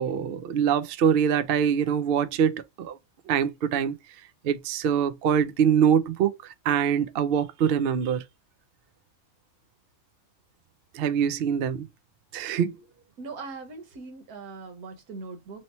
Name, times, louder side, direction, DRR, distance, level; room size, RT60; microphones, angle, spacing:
voice 1, 0.0-3.0 3.3-4.0 4.4-8.2 10.9-11.9 12.3-12.8, right 8 dB, 65° right, 0.5 m, -24 dB
voice 2, 13.2-15.6, right 4 dB, 85° right, 1.6 m, -40 dB
3.1 x 2.9 x 4.1 m
omnidirectional pair, 1.5 m